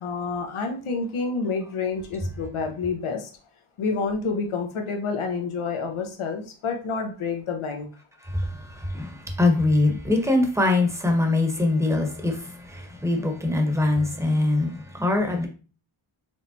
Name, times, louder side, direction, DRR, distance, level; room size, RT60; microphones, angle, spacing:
voice 1, 0.0-3.3 3.8-7.9, left 4 dB, 80° left, 1.0 m, -28 dB
voice 2, 8.2-15.5, left 2 dB, 5° right, 1.0 m, -23 dB
4.7 x 3.3 x 2.7 m
wide cardioid pair, 100°, 49 cm